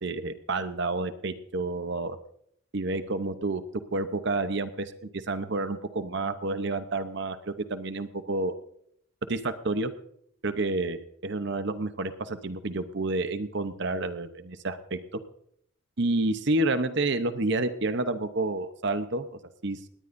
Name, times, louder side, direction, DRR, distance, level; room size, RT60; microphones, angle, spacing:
voice 1, 0.0-2.2 2.7-3.6 3.9-8.5 9.3-9.9 10.4-15.0 16.0-19.9, right 2 dB, 55° right, 11 dB, 0.8 m, -29 dB
19.5 x 18.0 x 2.6 m, 0.70 s
head